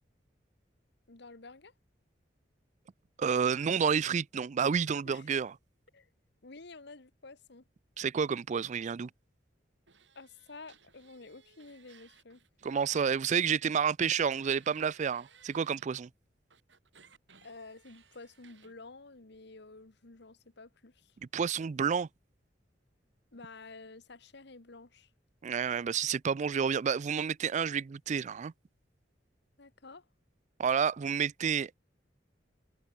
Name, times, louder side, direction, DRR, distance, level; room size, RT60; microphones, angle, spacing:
voice 1, 1.1-1.7 5.0-5.3 5.9-6.1 6.4-7.6 10.1-12.4 17.4-21.1 23.3-25.1 29.6-30.0, left 3 dB, 65° left, 1.5 m, -51 dB
voice 2, 3.2-5.5 8.0-9.1 12.6-16.1 21.3-22.1 25.4-28.5 30.6-31.7, right 6 dB, 40° right, 0.4 m, -30 dB
sound 1, 9.9-13.5 13.8-15.9 16.5-18.7, right 6 dB, 75° right, 7.8 m, -62 dB
head